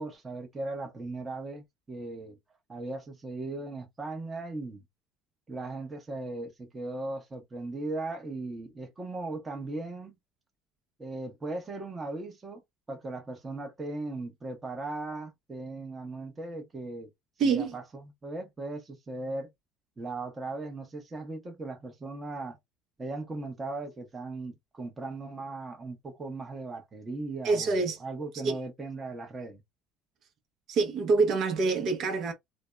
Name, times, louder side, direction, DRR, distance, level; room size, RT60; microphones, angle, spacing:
voice 1, 0.0-2.4 2.7-4.8 5.5-10.1 11.0-12.6 12.9-17.1 17.4-19.5 20.0-22.6 23.0-29.6, right 2 dB, 25° right, 0.9 m, -38 dB
voice 2, 17.4-17.7 27.4-28.0 28.4-28.6 30.7-32.3, right 4 dB, 55° right, 0.8 m, -26 dB
2.6 x 2.1 x 2.2 m
supercardioid pair, 100°, 0 cm